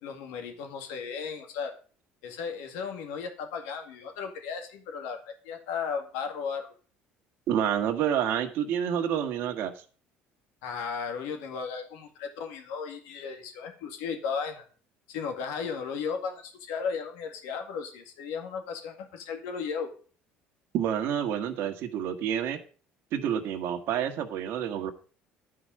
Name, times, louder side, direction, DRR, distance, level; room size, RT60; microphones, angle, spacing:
voice 1, 0.0-1.7 2.2-6.7 10.6-14.6 15.1-19.9, left 6 dB, 85° left, 5 dB, 2.0 m, -35 dB
voice 2, 7.5-9.8 20.7-22.6 23.1-24.9, right 9 dB, 65° right, 5 dB, 1.5 m, -28 dB
12.0 x 4.9 x 7.6 m, 0.40 s
supercardioid pair, 100°, 4 cm